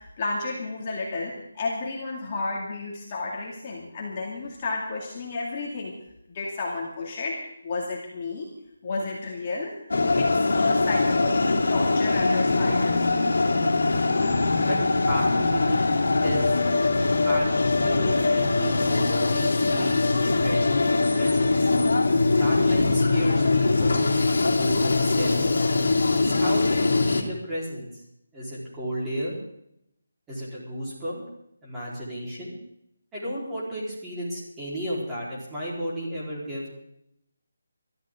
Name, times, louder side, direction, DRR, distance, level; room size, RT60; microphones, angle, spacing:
voice 1, 0.0-5.9 6.3-8.5 8.8-9.7 10.1-13.1, left 3 dB, 25° left, -3 dB, 2.4 m, -32 dB
sound 1, 9.9-27.2, left 3 dB, 70° left, 2.7 m, -22 dB
voice 2, 15.1-15.9 16.2-16.5 17.2-21.7 22.4-25.4 26.2-27.9 28.3-29.4 30.3-31.2 31.6-32.5 33.1-36.7, equal, 10° right, -8 dB, 4.3 m, -33 dB
22.5 x 13.5 x 3.8 m, 0.76 s
hypercardioid pair, 175°, 0 cm